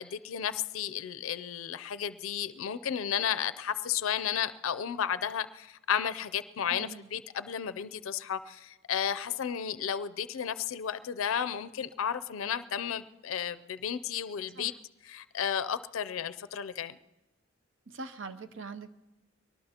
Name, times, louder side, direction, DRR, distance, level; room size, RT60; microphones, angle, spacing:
voice 1, 0.0-14.7 15.1-17.0, left 8 dB, 85° left, 13 dB, 0.4 m, -33 dB
voice 2, 6.7-7.1 14.5-14.7 17.9-18.9, right 4 dB, 70° right, 9 dB, 0.7 m, -42 dB
23.0 x 19.0 x 2.8 m, 1.0 s
head